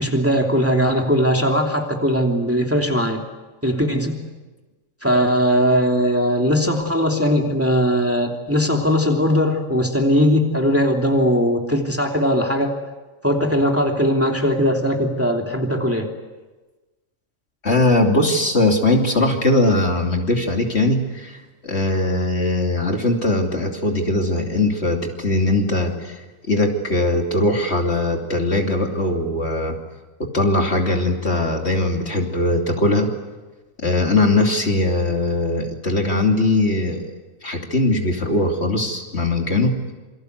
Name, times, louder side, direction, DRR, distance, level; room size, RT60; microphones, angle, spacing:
voice 1, 0.0-3.2 3.6-4.2 5.0-12.8 13.2-16.1, equal, 10° right, 1 dB, 2.9 m, -19 dB
voice 2, 17.6-26.2 26.5-29.7 30.2-33.1 33.8-37.1 37.4-39.9, left 2 dB, 50° left, 2 dB, 3.2 m, -20 dB
28.0 x 24.5 x 8.1 m, 1.2 s
omnidirectional pair, 1.4 m